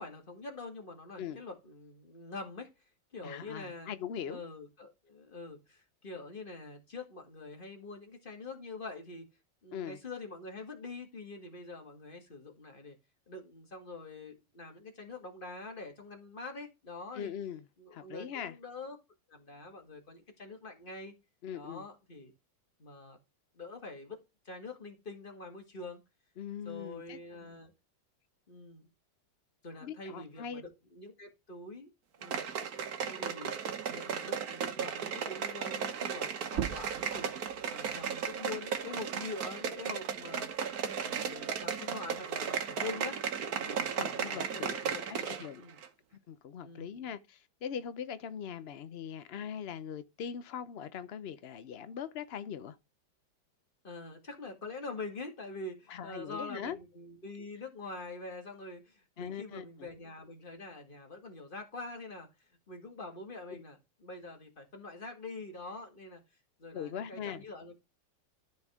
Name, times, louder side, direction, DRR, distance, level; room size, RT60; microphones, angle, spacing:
voice 1, 0.0-2.7 3.1-3.9 4.3-9.3 9.6-13.0 13.3-17.3 17.8-19.0 19.3-21.1 21.5-22.3 22.8-23.2 23.5-24.2 24.5-26.0 26.7-27.7 28.5-28.9 29.6-31.9 32.2-32.5 33.0-33.5 33.9-40.5 41.0-43.2 43.6-45.3 45.6-45.8 46.6-47.0 53.8-66.2 66.6-67.8, left 3 dB, 30° left, 2.0 m, -45 dB
voice 2, 3.2-4.4 9.7-10.0 17.1-17.6 17.9-18.5 21.4-21.8 26.4-27.5 29.8-30.6 43.9-45.6 46.3-52.8 55.9-56.8 59.2-59.9 63.5-63.6 66.7-67.4, left 8 dB, 85° left, 0.5 m, -41 dB
sound 1, 32.2-45.5 45.8-45.9, right 7 dB, 60° right, 1.5 m, -35 dB
sound 2, 36.5-41.7 42.1-43.9, right 10 dB, 80° right, 0.6 m, -44 dB
13.0 x 4.6 x 3.6 m
omnidirectional pair, 2.0 m